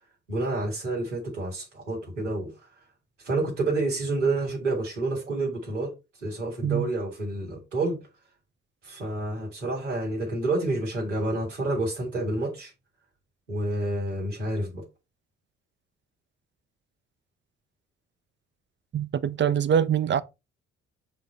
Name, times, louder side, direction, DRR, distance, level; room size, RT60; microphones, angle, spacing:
voice 1, 0.3-2.5 3.2-5.9 6.2-8.0 8.8-12.7 13.5-14.8, right 2 dB, 90° right, 1.9 m, -29 dB
voice 2, 18.9-20.2, right 8 dB, 30° right, 0.6 m, -24 dB
7.0 x 3.8 x 4.2 m
figure-of-eight pair, 45°, 35 cm